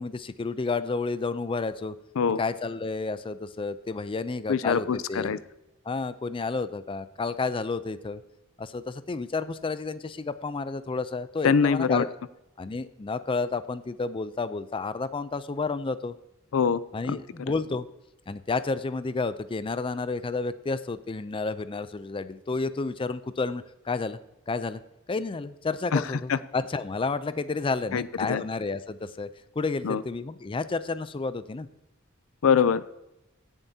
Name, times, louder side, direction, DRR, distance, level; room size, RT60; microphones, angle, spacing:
voice 1, 0.0-1.9 2.4-5.3 5.9-8.2 8.6-12.1 12.6-16.1 16.9-17.9 18.3-24.2 24.5-24.8 25.1-29.3 29.6-31.7, left 4 dB, 25° left, 13 dB, 0.4 m, -31 dB
voice 2, 4.5-5.4 11.4-12.0 16.5-16.8 17.1-17.2 25.9-26.0 26.3-26.4 27.9-28.4 29.8-30.0 32.4-32.8, left 6 dB, 80° left, 16 dB, 0.4 m, -23 dB
17.0 x 7.3 x 2.8 m, 0.90 s
head